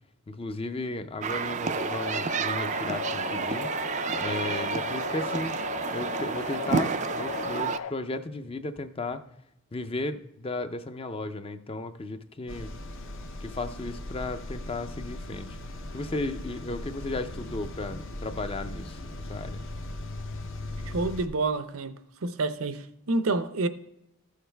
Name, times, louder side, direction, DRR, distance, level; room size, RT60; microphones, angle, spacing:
voice 1, 0.3-3.7 4.2-5.5 5.9-9.2 9.7-12.7 13.4-15.6 15.9-19.6, left 2 dB, 25° left, 0.5 m, -35 dB
sound 1, 1.2-7.8, right 5 dB, 30° right, 0.3 m, -30 dB
sound 2, 1.8-7.9, left 6 dB, 75° left, 0.5 m, -36 dB
sound 3, 12.5-21.3, left 1 dB, 55° left, 0.8 m, -38 dB
voice 2, 20.9-21.9 22.2-23.7, right 3 dB, 65° right, 0.6 m, -28 dB
14.5 x 6.6 x 3.3 m
head